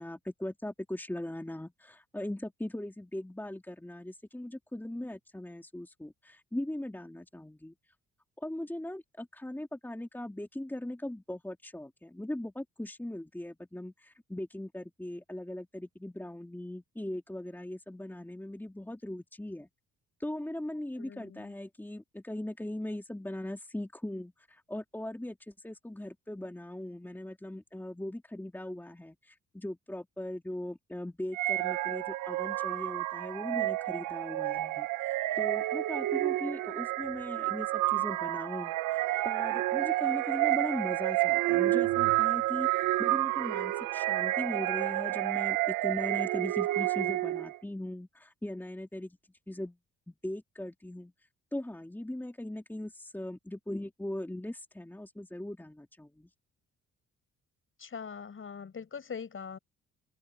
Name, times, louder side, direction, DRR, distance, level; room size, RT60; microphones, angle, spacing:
voice 1, 0.0-7.7 8.4-19.7 20.2-49.2 49.5-49.8 50.1-51.1 51.5-56.3, left 1 dB, 5° left, 3.1 m, -39 dB
voice 2, 21.0-21.5 57.8-59.6, left 6 dB, 45° left, 6.9 m, -42 dB
sound 1, 31.3-47.6, right 17 dB, 85° right, 0.8 m, -30 dB
open air
cardioid pair, 90°, 30 cm